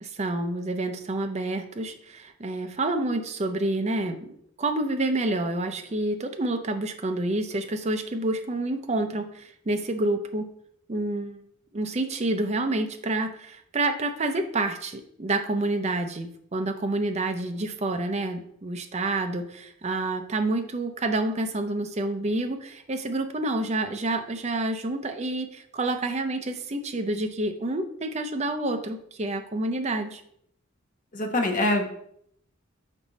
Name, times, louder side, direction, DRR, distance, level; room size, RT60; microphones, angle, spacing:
voice 1, 0.0-10.5 10.9-11.4 11.7-30.2, right 2 dB, 30° right, 7 dB, 0.6 m, -28 dB
voice 2, 31.1-31.9, left 1 dB, 40° left, 3 dB, 0.9 m, -24 dB
5.4 x 5.1 x 4.0 m, 0.70 s
head